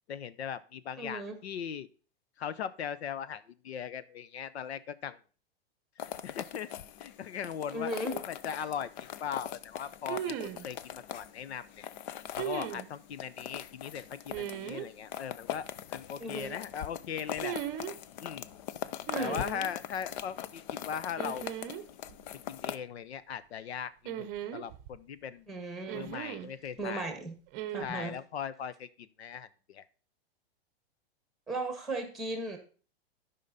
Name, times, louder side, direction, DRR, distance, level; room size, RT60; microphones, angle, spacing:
voice 1, 0.1-1.9 2.4-5.2 6.0-6.7 7.0-11.9 12.4-17.6 18.2-18.5 19.2-21.5 22.5-25.5 25.9-27.1 27.8-28.9 29.2-29.8, left 8 dB, 85° left, 17 dB, 0.8 m, -39 dB
voice 2, 1.0-1.4 7.7-8.2 16.2-16.6 19.1-19.4 25.5-26.1 26.8-27.4 27.7-28.2 31.5-32.6, right 2 dB, ahead, 5 dB, 1.7 m, -36 dB
sound 1, 6.0-22.8, left 11 dB, 45° left, 0.5 m, -42 dB
sound 2, 8.1-8.2 10.1-10.7 12.4-12.9 14.3-14.9 17.4-17.9 19.1-19.7 21.2-21.8 22.1-22.2 24.1-25.0 25.9-26.5 27.5-27.8, right 10 dB, 30° right, 0.8 m, -37 dB
12.0 x 5.5 x 4.1 m, 0.38 s
hypercardioid pair, 150°, 31 cm